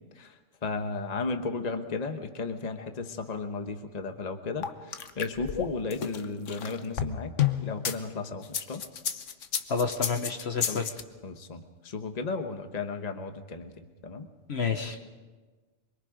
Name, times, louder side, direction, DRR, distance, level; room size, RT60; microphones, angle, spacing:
voice 1, 0.6-7.3 7.6-8.8 10.7-10.8 11.2-13.7 14.0-14.3, left 4 dB, 35° left, 6 dB, 1.2 m, -34 dB
sound 1, 4.6-8.0 8.4-11.0, left 9 dB, 75° left, 1.3 m, -30 dB
voice 2, 9.7-10.9 14.5-15.0, left 5 dB, 60° left, 5 dB, 1.4 m, -29 dB
24.5 x 23.0 x 5.1 m, 1.3 s
omnidirectional pair, 1.3 m